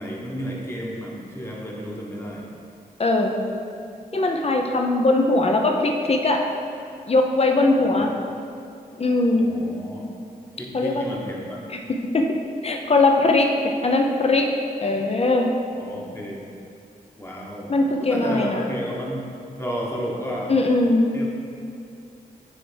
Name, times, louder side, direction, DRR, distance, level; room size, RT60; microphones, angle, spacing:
voice 1, 0.0-2.5 7.7-8.1 9.3-10.1 10.6-11.6 15.8-16.5 17.2-19.3 19.6-20.6 21.1-21.3, equal, 15° left, -3 dB, 1.2 m, -32 dB
voice 2, 3.0-3.3 4.1-6.4 7.1-8.1 9.0-9.4 10.7-11.0 12.1-12.2 12.6-14.5 14.8-15.5 17.7-18.6 20.5-21.0, left 2 dB, 40° left, 2 dB, 0.7 m, -20 dB
9.2 x 3.4 x 3.4 m, 2.5 s
cardioid pair, 75°, 16 cm